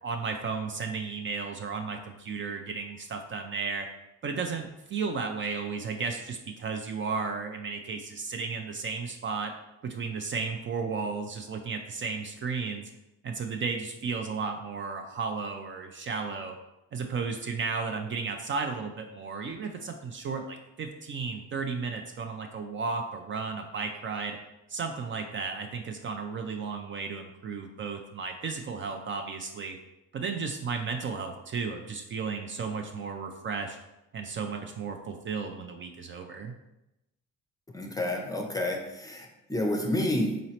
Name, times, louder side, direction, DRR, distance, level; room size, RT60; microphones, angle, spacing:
voice 1, 0.0-3.9 4.2-9.5 9.8-12.9 13.2-16.6 16.9-24.4 24.7-29.8 30.1-33.8 34.1-36.6, right 5 dB, 40° right, 4 dB, 0.4 m, -34 dB
voice 2, 37.7-40.4, left 1 dB, 10° left, 2 dB, 0.5 m, -30 dB
3.9 x 3.0 x 2.9 m, 0.91 s
cardioid pair, 90°, 30 cm